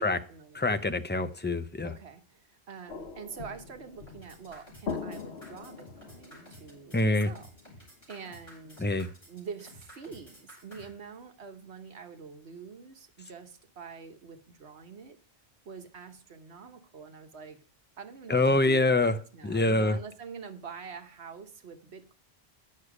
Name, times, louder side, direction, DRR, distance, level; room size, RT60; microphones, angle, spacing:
voice 1, 0.0-0.7 1.8-7.5 7.7-8.9 9.3-15.2 15.6-17.6 18.0-22.1, right 6 dB, 80° right, 8 dB, 1.4 m, -45 dB
voice 2, 0.5-1.9 6.9-7.3 8.8-9.1 18.3-19.2 19.4-20.0, left 2 dB, 15° left, 10 dB, 0.4 m, -25 dB
sound 1, 2.9-8.1 8.7-8.8, left 5 dB, 90° left, 1.1 m, -42 dB
sound 2, 4.1-10.9, equal, 30° left, 4.9 m, -52 dB
9.7 x 6.6 x 4.8 m, 0.41 s
omnidirectional pair, 1.1 m